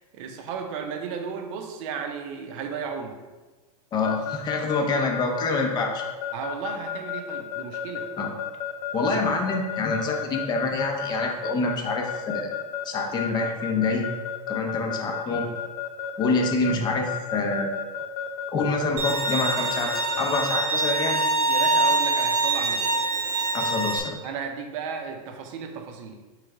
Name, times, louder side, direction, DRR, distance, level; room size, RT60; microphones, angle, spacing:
voice 1, 0.0-3.2 6.3-8.1 9.2-9.4 21.5-22.9 24.2-26.2, right 6 dB, 55° right, 4 dB, 0.7 m, -34 dB
voice 2, 3.9-6.0 8.2-8.3 8.9-12.5 12.8-14.1 14.5-15.5 16.2-17.8 18.5-21.2 23.5-24.2, left 3 dB, 20° left, 2 dB, 0.6 m, -26 dB
Keyboard (musical) / Alarm, 4.0-20.7, left 9 dB, 80° left, 0.6 m, -32 dB
Bowed string instrument, 19.0-24.0, right 3 dB, 40° right, 0.9 m, -24 dB
3.4 x 3.2 x 4.8 m, 1.3 s
supercardioid pair, 140°, 20 cm